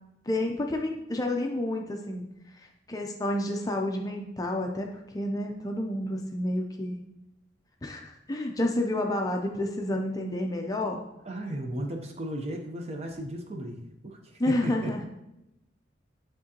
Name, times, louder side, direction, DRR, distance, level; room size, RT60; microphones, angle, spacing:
voice 1, 0.3-2.2 2.5-7.0 7.8-11.0 14.4-15.0, left 1 dB, 20° left, 2 dB, 0.5 m, -30 dB
voice 2, 11.2-14.2 14.5-14.9, right 1 dB, 35° right, 3 dB, 0.7 m, -35 dB
8.9 x 3.7 x 2.9 m, 0.89 s
head